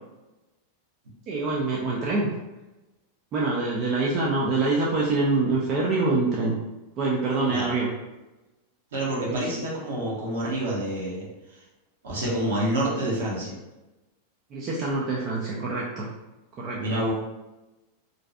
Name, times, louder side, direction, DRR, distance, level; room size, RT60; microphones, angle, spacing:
voice 1, 1.3-2.3 3.3-6.5 7.0-7.9 9.3-9.6 14.5-16.1 16.6-17.1, right 3 dB, 35° right, -4 dB, 0.4 m, -25 dB
voice 2, 8.9-11.3 12.0-13.6 16.7-17.1, right 1 dB, 60° right, -5 dB, 0.8 m, -28 dB
2.5 x 2.3 x 2.2 m, 1.1 s
figure-of-eight pair, 90°, 0 cm